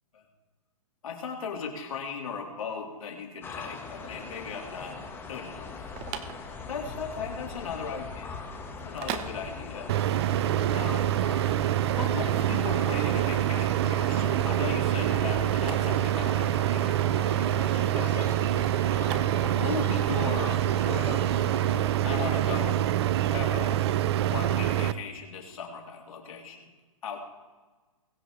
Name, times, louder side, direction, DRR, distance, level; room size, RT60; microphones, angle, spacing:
voice 1, 1.0-5.0 5.3-5.9 6.7-8.3 8.8-9.9 10.6-11.1 12.0-18.3 19.3-21.3 22.0-22.9 23.3-23.8 24.2-26.7 27.0-27.2, left 6 dB, 65° left, -1 dB, 3.8 m, -37 dB
sound 1, 3.4-21.9, left 4 dB, 10° left, 1.6 m, -41 dB
sound 2, 5.6-19.9, right 9 dB, 30° right, 1.1 m, -43 dB
sound 3, 9.9-24.9, right 12 dB, 45° right, 0.5 m, -26 dB
22.0 x 8.1 x 3.3 m, 1.3 s
hypercardioid pair, 140°, 19 cm